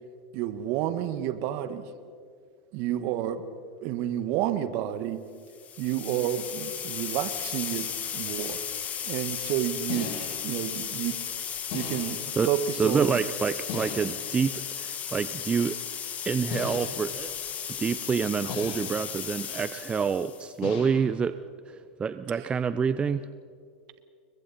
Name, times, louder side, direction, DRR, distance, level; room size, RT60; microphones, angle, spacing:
voice 1, 0.3-1.9 2.7-3.4 3.8-5.2 5.8-8.6 9.0-10.1 10.4-11.2 11.7-12.2 12.4-13.2, right 11 dB, 55° right, 11 dB, 1.6 m, -30 dB
sound 1, 5.5-20.5, left 8 dB, 35° left, 2.2 m, -35 dB
sound 2, 8.0-8.1 9.9-10.5 11.7-12.3 13.7-14.3 16.5-17.1 18.5-19.0 20.6-21.2, left 5 dB, 60° left, 7.3 m, -37 dB
voice 2, 12.4-15.8 16.3-17.3 17.8-21.4 21.7-23.3, right 6 dB, 20° right, 13 dB, 0.6 m, -27 dB
29.5 x 23.0 x 4.3 m, 2.2 s
hypercardioid pair, 95°, 5 cm